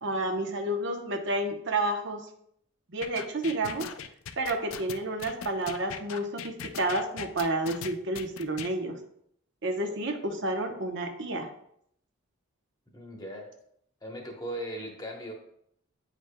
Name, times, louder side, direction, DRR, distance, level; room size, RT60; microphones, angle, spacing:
voice 1, 0.0-2.3 2.9-3.9 4.4-8.9 9.6-11.5, right 2 dB, 55° right, 5 dB, 0.8 m, -30 dB
sound 1, 3.0-8.7, left 8 dB, 70° left, 0.4 m, -40 dB
voice 2, 12.9-13.5 14.0-15.3, right 1 dB, 20° left, 0 dB, 1.0 m, -38 dB
8.7 x 5.0 x 2.2 m, 0.70 s
head